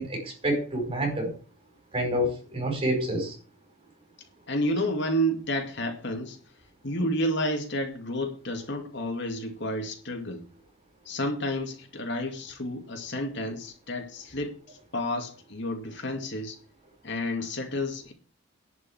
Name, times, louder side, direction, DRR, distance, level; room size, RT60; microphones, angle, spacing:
voice 1, 0.0-1.3 1.9-3.3, equal, 25° right, 4.6 m, -28 dB
voice 2, 4.5-6.4 6.8-10.5 11.1-16.6 17.0-18.1, equal, 55° left, 2.3 m, -30 dB
11.0 x 5.3 x 8.6 m
head